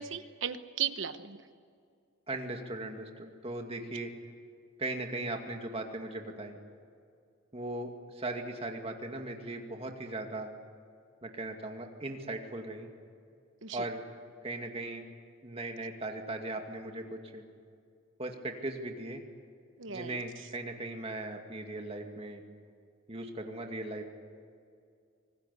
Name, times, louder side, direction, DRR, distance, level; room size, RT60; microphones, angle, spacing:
voice 1, 0.0-1.4 13.6-13.8 19.8-20.2, right 8 dB, 65° right, 10 dB, 1.1 m, -36 dB
voice 2, 2.3-4.1 4.8-6.6 7.5-10.5 11.2-12.9 13.7-14.0 14.4-15.1 15.4-17.4 18.2-19.2 19.9-22.4 23.1-24.1, right 2 dB, 30° right, 3 dB, 2.3 m, -38 dB
26.0 x 19.5 x 8.4 m, 2.3 s
head